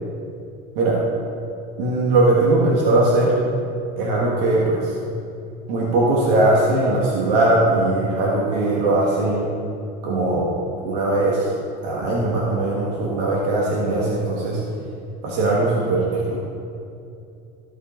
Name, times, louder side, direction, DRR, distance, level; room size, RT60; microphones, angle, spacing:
voice 1, 1.8-3.3 4.0-5.0 5.7-9.5 10.0-10.5 10.8-11.5 11.8-14.6 15.2-16.4, right 2 dB, 70° right, -5 dB, 1.7 m, -20 dB
14.0 x 5.0 x 4.5 m, 2.6 s
cardioid pair, 170°, 21 cm